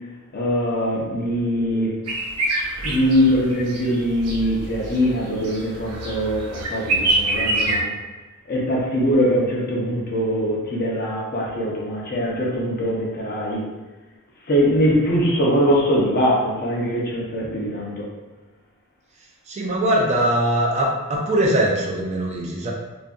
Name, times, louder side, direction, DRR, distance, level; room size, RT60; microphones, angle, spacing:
voice 1, 0.3-2.0 2.8-7.9 8.5-13.6 14.5-18.0, equal, 45° left, -4 dB, 0.6 m, -22 dB
sound 1, 2.1-7.8, right 2 dB, 85° right, 0.5 m, -26 dB
voice 2, 19.5-22.7, right 1 dB, 30° right, -2 dB, 0.4 m, -21 dB
2.6 x 2.5 x 2.3 m, 1.2 s
head